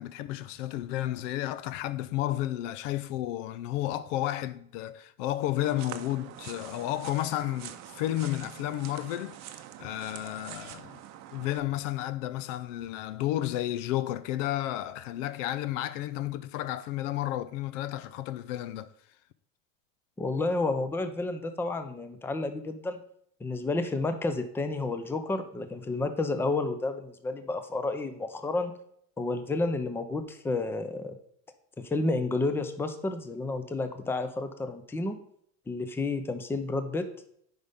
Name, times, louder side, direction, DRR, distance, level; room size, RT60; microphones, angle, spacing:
voice 1, 0.0-11.0 11.3-18.9, left 14 dB, 75° left, 0.6 m, -32 dB
sound 1, 5.6-11.6, right 12 dB, 45° right, 0.7 m, -45 dB
voice 2, 20.2-23.0 23.4-28.7 29.2-31.2 31.8-35.2 35.7-37.0, left 2 dB, 5° left, 0.5 m, -31 dB
9.4 x 5.3 x 3.5 m
supercardioid pair, 130°, 38 cm